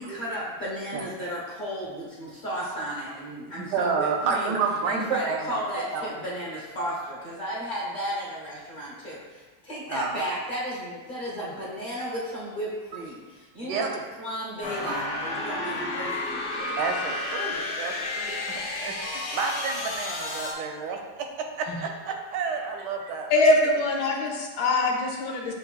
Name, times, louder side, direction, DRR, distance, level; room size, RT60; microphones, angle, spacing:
voice 1, 0.0-4.5 4.9-13.8 14.2-16.8, equal, 35° left, -6 dB, 0.9 m, -34 dB
voice 2, 3.6-5.6 5.9-6.1 9.9-10.2 13.6-14.0 14.8-15.0 16.8-23.5, right 5 dB, 80° right, 3 dB, 1.2 m, -30 dB
sound 1, 14.6-20.5, left 2 dB, 90° left, 1.5 m, -31 dB
voice 3, 23.3-25.5, left 2 dB, 70° left, 0 dB, 1.2 m, -23 dB
7.5 x 2.8 x 2.3 m, 1.3 s
omnidirectional pair, 1.9 m